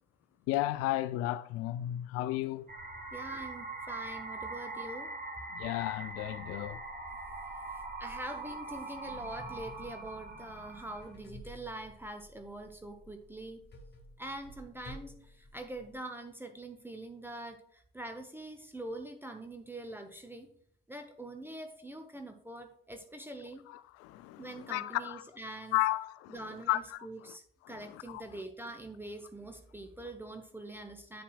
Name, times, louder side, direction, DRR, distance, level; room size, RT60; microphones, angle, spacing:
voice 1, 0.5-2.7 5.5-6.8 23.7-25.2 25.7-26.4 26.7-27.3 27.6-28.4, left 16 dB, 55° left, 0.4 m, -34 dB
sound 1, 2.7-11.1, right 3 dB, 30° right, 2.7 m, -42 dB
voice 2, 3.1-5.1 7.7-13.6 14.2-20.5 20.9-23.6 24.4-25.8 26.3-31.2, right 1 dB, 5° right, 0.9 m, -44 dB
sound 2, 9.0-16.0, left 1 dB, 35° left, 2.0 m, -53 dB
8.6 x 7.0 x 2.3 m
figure-of-eight pair, 50°, 29 cm